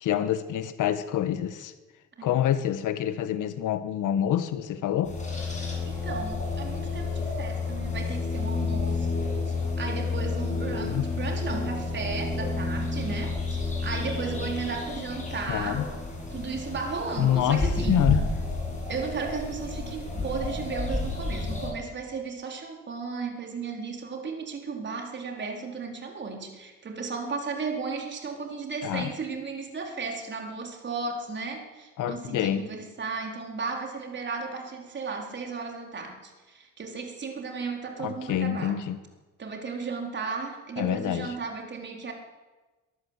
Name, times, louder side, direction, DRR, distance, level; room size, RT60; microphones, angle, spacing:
voice 1, 0.0-1.7 2.2-5.1 10.7-11.0 15.5-15.9 17.2-18.2 28.8-29.1 32.0-32.6 38.0-39.0 40.8-41.3, left 10 dB, 80° left, 12 dB, 1.5 m, -27 dB
sound 1, 5.0-21.7, left 3 dB, 25° left, 7.7 m, -30 dB
voice 2, 5.9-15.9 16.3-18.0 18.9-38.8 39.4-42.1, right 4 dB, 35° right, 2 dB, 4.3 m, -35 dB
23.5 x 13.5 x 8.3 m, 1.2 s
cardioid pair, 140°, 31 cm